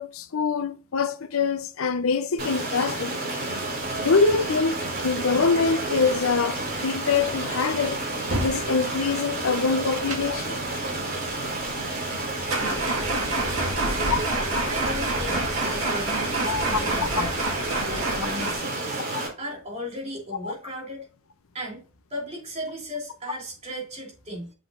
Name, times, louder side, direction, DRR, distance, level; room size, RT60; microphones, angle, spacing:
voice 1, 0.0-3.3 4.0-8.0 8.4-10.5 14.1-14.2 16.5-16.6 20.4-20.5, left 4 dB, 80° left, 0.7 m, -24 dB
Stream, 2.4-19.3, right 2 dB, 50° right, 3.1 m, -30 dB
sound 1, 3.6-18.5, right 2 dB, 85° right, 1.8 m, -31 dB
voice 2, 13.6-14.3 14.7-17.3 17.8-19.0 19.4-21.1 21.5-21.8 22.1-24.5, equal, 30° right, 3.2 m, -36 dB
7.5 x 6.1 x 2.5 m
head